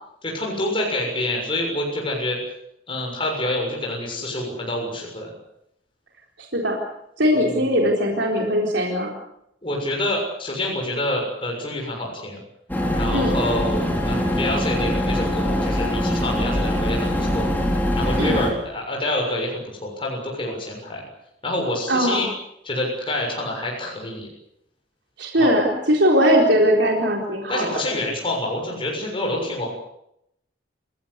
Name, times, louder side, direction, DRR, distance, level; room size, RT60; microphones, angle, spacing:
voice 1, 0.2-2.4 2.9-5.3 7.5-7.6 9.6-12.4 12.9-17.5 17.9-21.0 21.4-22.3 22.6-24.3 25.4-25.5 27.5-29.7, left 1 dB, 30° left, -1 dB, 6.8 m, -27 dB
voice 2, 6.4-6.8 7.2-9.1 13.1-13.4 18.2-18.4 21.9-22.2 25.2-27.8, equal, 70° right, 0 dB, 4.2 m, -20 dB
sound 1, 12.7-18.5, equal, 10° left, 4.6 m, -23 dB
28.5 x 17.0 x 8.3 m, 0.79 s
head